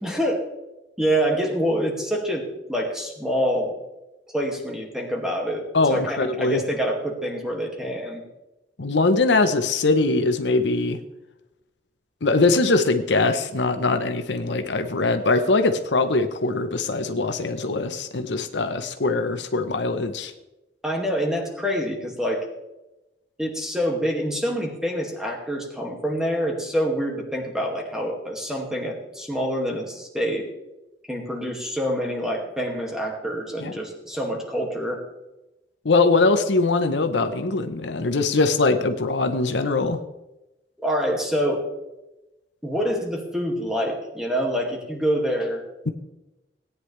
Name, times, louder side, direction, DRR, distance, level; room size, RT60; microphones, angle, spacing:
voice 1, 0.0-0.4 1.0-3.7 4.3-8.2 20.8-22.5 23.4-30.5 31.1-35.0 40.8-41.7 42.6-45.6, equal, 5° right, 0 dB, 2.1 m, -26 dB
voice 2, 5.7-6.6 8.8-11.0 12.2-20.3 33.6-33.7 35.8-40.0, left 3 dB, 75° left, 8 dB, 0.9 m, -22 dB
17.5 x 9.7 x 3.3 m, 0.97 s
head